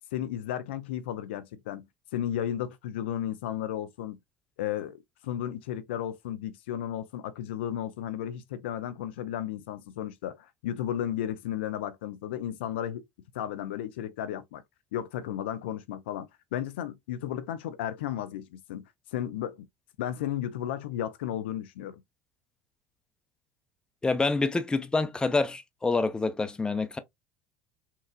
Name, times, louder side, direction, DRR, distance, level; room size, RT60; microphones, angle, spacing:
voice 1, 0.1-1.9 2.1-4.2 4.6-13.0 13.3-14.6 14.9-19.7 20.0-22.0, left 11 dB, 65° left, 0.4 m, -34 dB
voice 2, 24.0-27.0, left 3 dB, 15° left, 0.6 m, -27 dB
5.7 x 2.4 x 2.2 m
figure-of-eight pair, 70°, 6 cm